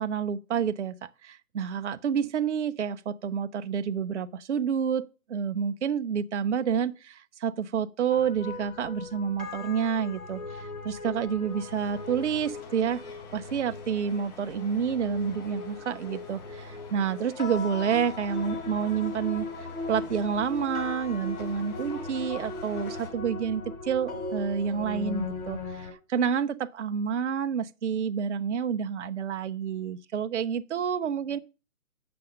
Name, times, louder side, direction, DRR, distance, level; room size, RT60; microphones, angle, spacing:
voice 1, 0.0-13.0 13.3-19.5 19.9-31.4, right 7 dB, 50° right, 0.5 m, -29 dB
sound 1, 8.1-25.9, left 3 dB, 65° left, 3.5 m, -38 dB
sound 2, 11.4-23.1, left 5 dB, 30° left, 3.4 m, -48 dB
8.7 x 6.8 x 5.2 m
hypercardioid pair, 165°, 45 cm